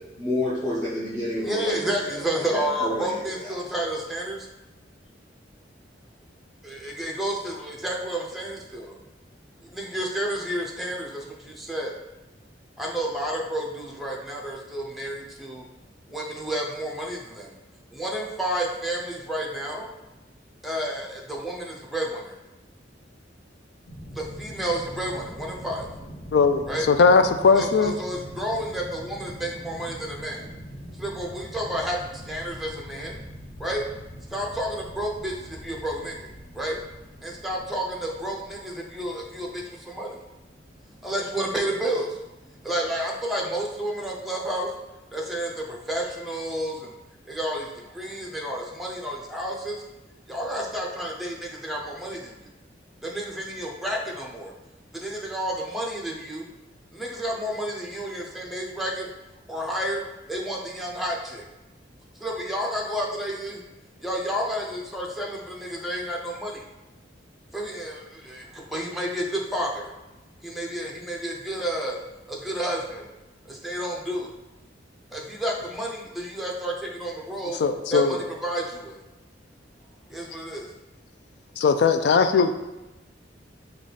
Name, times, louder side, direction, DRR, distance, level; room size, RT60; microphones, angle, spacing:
voice 1, 0.2-1.8 2.3-3.5, left 1 dB, 20° left, -10 dB, 0.9 m, -29 dB
voice 2, 1.4-4.5 6.6-9.0 9.6-11.9 12.8-15.7 16.1-17.5 17.9-19.9 20.6-22.3 24.1-25.9 26.7-26.9 27.5-30.4 31.0-33.2 33.6-33.8 34.3-36.3 36.5-36.8 37.2-40.1 41.0-42.2 42.6-44.7 45.1-46.9 47.3-49.8 50.3-52.5 53.0-54.5 54.9-56.4 56.9-59.1 59.5-60.0 60.3-61.4 62.2-63.6 64.0-66.6 67.5-69.9 70.4-72.0 72.3-73.1 73.5-74.3 75.1-77.6 77.9-79.0 80.1-80.7, right 1 dB, ahead, -1 dB, 0.6 m, -30 dB
sound 1, 23.9-43.0, equal, 80° left, 1.0 m, -43 dB
voice 3, 26.3-28.0 77.6-78.2 81.6-82.5, left 5 dB, 65° left, 9 dB, 0.3 m, -19 dB
4.8 x 2.4 x 4.0 m, 1.0 s
head